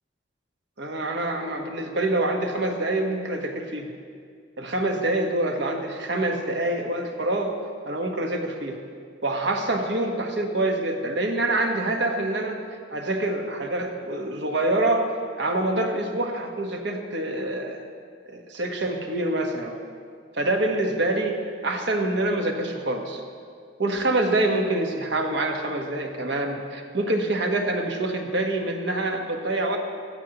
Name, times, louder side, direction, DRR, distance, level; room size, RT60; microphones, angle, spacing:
voice 1, 0.8-3.9 4.6-7.5 7.8-8.8 9.2-12.6 12.9-15.1 15.4-17.9 18.3-19.7 20.3-21.4 21.6-23.2 23.8-29.8, right 2 dB, 80° right, 3 dB, 1.3 m, -26 dB
16.5 x 14.0 x 3.0 m, 2.1 s
head